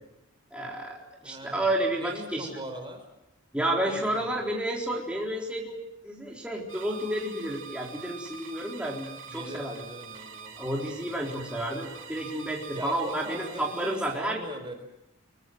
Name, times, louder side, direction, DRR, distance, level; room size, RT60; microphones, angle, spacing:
voice 1, 0.5-1.0 1.2-2.6 3.5-5.8 6.0-9.8 10.6-14.4, right 1 dB, 5° right, -3 dB, 4.0 m, -31 dB
voice 2, 1.2-1.7 2.0-3.0 3.8-4.5 9.3-11.1 12.7-14.8, right 1 dB, 25° right, 6 dB, 4.1 m, -41 dB
sound 1, 6.7-14.2, right 6 dB, 70° right, 3.0 m, -45 dB
25.0 x 23.0 x 7.9 m, 0.88 s
head